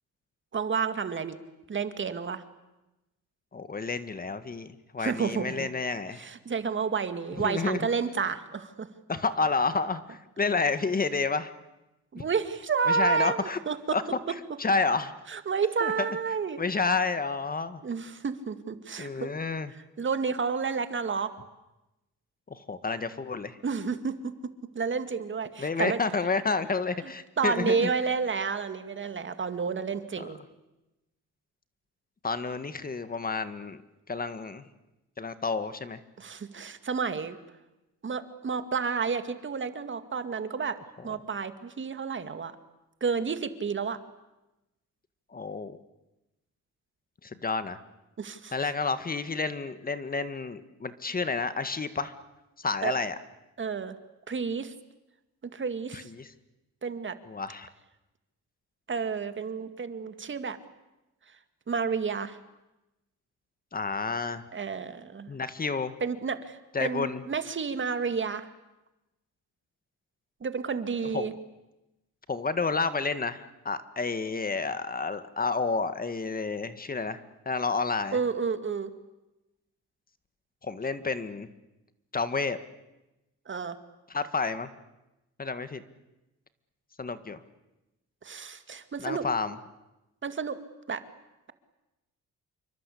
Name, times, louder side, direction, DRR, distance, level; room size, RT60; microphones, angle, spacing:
voice 1, 0.5-1.4 1.7-2.4 5.0-5.7 6.2-8.9 12.1-14.0 15.3-16.6 17.8-19.3 20.0-21.3 23.6-26.0 27.0-30.4 36.2-37.4 38.0-42.6 43.0-44.0 48.2-48.5 52.8-52.9 53.6-54.0 54.3-54.7 55.5-56.1 56.8-57.2 58.9-60.6 61.7-62.4 64.5-65.3 66.0-68.5 70.4-71.3 78.1-78.9 83.5-83.8 88.2-89.3 90.2-90.6 90.9-91.0, right 5 dB, 40° right, 10 dB, 2.2 m, -30 dB
voice 2, 3.5-6.3 7.4-7.9 9.1-11.5 12.2-12.3 12.9-13.6 13.9-14.0 14.6-15.1 15.8-15.9 16.6-17.8 19.0-19.7 22.5-23.6 25.6-27.9 30.2-30.3 32.2-33.8 34.1-34.6 35.2-36.0 45.3-45.8 47.2-47.8 48.5-52.1 52.6-53.1 55.9-56.3 57.3-57.7 63.7-64.4 65.3-65.9 66.7-67.2 71.1-71.3 72.3-77.2 77.5-78.2 80.6-81.5 82.1-82.6 84.1-84.7 85.4-85.8 87.0-87.4 89.0-89.6, left 4 dB, 30° left, 12 dB, 1.8 m, -30 dB
28.0 x 24.0 x 8.6 m, 0.98 s
cardioid pair, 90°, 30 cm